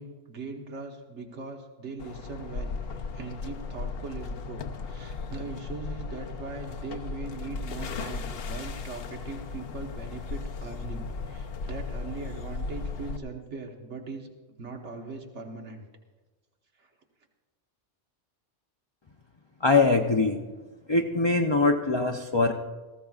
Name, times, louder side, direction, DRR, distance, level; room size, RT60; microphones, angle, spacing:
voice 1, 0.0-2.7 3.1-14.3 14.6-15.8 16.8-16.9, right 4 dB, 70° right, 3 dB, 1.6 m, -40 dB
sound 1, 2.0-13.2, left 4 dB, 60° left, 0.9 m, -36 dB
voice 2, 19.6-20.4 20.9-22.5, left 3 dB, 30° left, 3 dB, 0.5 m, -22 dB
18.0 x 15.0 x 2.4 m, 1.3 s
omnidirectional pair, 1.2 m